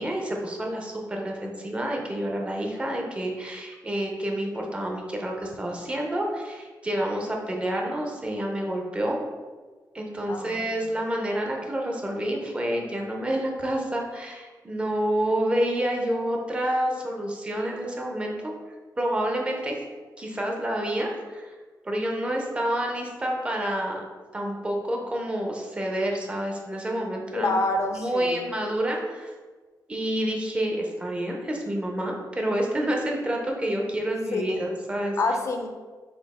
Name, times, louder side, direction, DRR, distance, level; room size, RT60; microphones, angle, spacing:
voice 1, 0.0-9.2 9.9-18.5 19.0-19.7 20.2-21.5 21.8-24.0 24.3-27.5 27.9-29.3 29.9-35.2, right 1 dB, 15° right, 0 dB, 0.6 m, -28 dB
voice 2, 10.3-10.6 27.3-28.4 34.3-34.6 35.2-35.7, left 2 dB, 45° left, 4 dB, 0.5 m, -27 dB
4.3 x 2.6 x 4.1 m, 1.4 s
wide cardioid pair, 160°, 7 cm